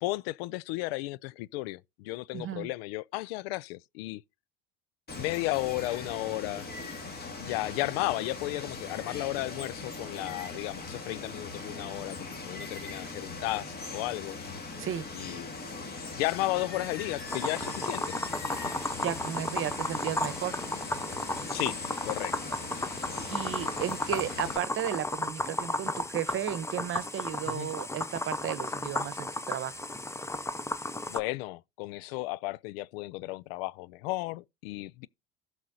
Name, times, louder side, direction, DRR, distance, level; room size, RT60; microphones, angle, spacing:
voice 1, 0.0-4.2 5.1-6.7 7.4-14.4 15.2-15.5 16.2-18.1 21.5-22.4 27.5-27.7 31.1-35.1, left 19 dB, 70° left, 0.5 m, -34 dB
voice 2, 2.3-2.7 14.8-15.1 19.0-20.9 23.3-29.8, right 10 dB, 40° right, 1.1 m, -34 dB
Water, 5.1-24.6, left 3 dB, 30° left, 2.5 m, -40 dB
sound 1, 17.3-31.2, left 2 dB, 10° left, 0.9 m, -34 dB
16.0 x 6.4 x 2.7 m
hypercardioid pair, 80°, 31 cm